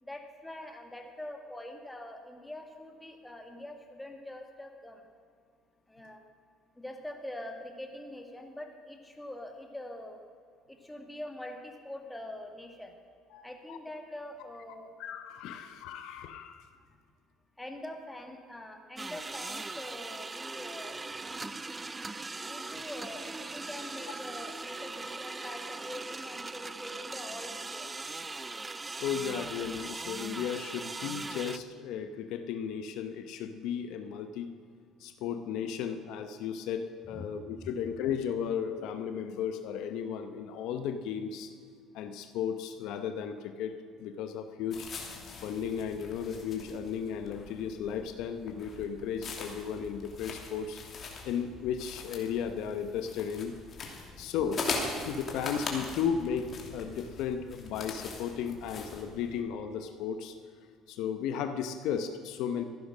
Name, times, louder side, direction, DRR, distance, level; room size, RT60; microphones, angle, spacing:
voice 1, 0.0-5.1 5.9-6.2 6.8-10.2 10.7-12.9 13.4-14.9 15.5-15.7 17.6-21.0 22.4-27.9 37.1-37.3 37.6-37.7, left 1 dB, 10° left, 3 dB, 2.1 m, -44 dB
voice 2, 13.3-13.8 15.0-16.7 29.0-34.5 35.0-41.5 41.9-43.7 44.0-44.9 45.4-50.8 51.2-53.5 54.2-54.6 54.9-60.3 60.9-62.6, left 7 dB, 75° left, 8 dB, 0.9 m, -35 dB
sound 1, 19.0-31.6, right 3 dB, 20° right, 0.5 m, -40 dB
sound 2, 44.7-59.4, left 4 dB, 45° left, 2.7 m, -41 dB
14.5 x 11.0 x 6.2 m, 2.1 s
supercardioid pair, 95°, 0 cm